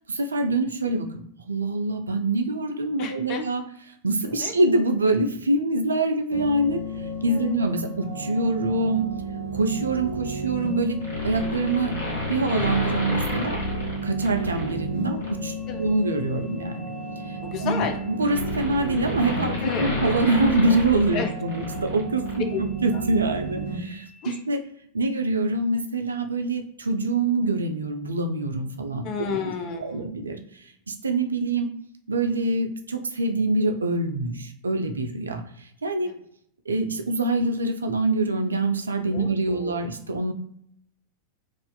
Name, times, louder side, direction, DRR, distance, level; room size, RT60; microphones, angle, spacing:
voice 1, 0.1-1.1 1.4-3.6 4.0-6.8 7.2-9.0 9.5-11.0 11.2-11.9 12.3-13.6 14.0-16.9 17.3-24.6 24.9-29.1 29.4-29.5 29.8-30.4 30.9-31.7 32.1-35.4 35.8-36.1 36.7-40.3, right 2 dB, 75° right, 5 dB, 0.3 m, -25 dB
voice 2, 3.0-3.4 4.3-4.5 7.3-7.4 15.7-15.9 17.4-18.0 19.6-19.9 21.1-21.3 22.5-22.6 24.2-24.4 29.0-30.1 36.0-36.1 39.1-39.8, left 6 dB, 40° left, 5 dB, 0.5 m, -31 dB
sound 1, 6.3-23.8, right 1 dB, 85° left, 0.9 m, -33 dB
sound 2, 11.0-14.7 15.2-15.4 16.6-22.0 22.3-22.4, left 2 dB, 60° left, 1.0 m, -31 dB
2.5 x 2.3 x 2.2 m, 0.69 s
figure-of-eight pair, 90°, 0 cm